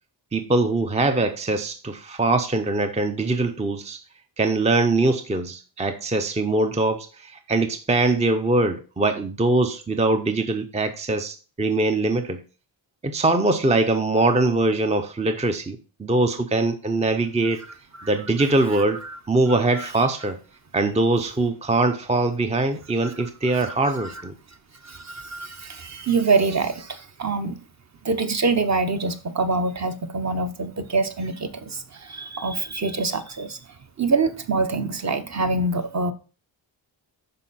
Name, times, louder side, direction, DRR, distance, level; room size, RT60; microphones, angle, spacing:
voice 1, 0.3-4.0 4.4-12.4 13.0-17.6 18.0-19.0 19.3-20.4 20.7-24.3, right 2 dB, 15° right, 0.5 m, -22 dB
voice 2, 24.8-27.6 28.0-33.6 34.0-36.1, right 3 dB, 35° right, 0.9 m, -25 dB
11.5 x 4.6 x 4.1 m
wide cardioid pair, 165°, 47 cm